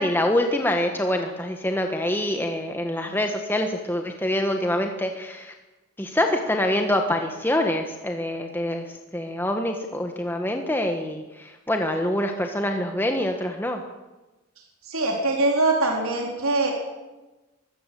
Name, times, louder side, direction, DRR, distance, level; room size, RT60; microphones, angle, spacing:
voice 1, 0.0-5.5 6.0-8.8 9.1-11.2 11.7-13.8, left 1 dB, 10° left, 4 dB, 1.3 m, -25 dB
voice 2, 14.9-16.7, right 2 dB, 75° right, 1 dB, 4.1 m, -23 dB
23.5 x 16.5 x 7.7 m, 1.1 s
head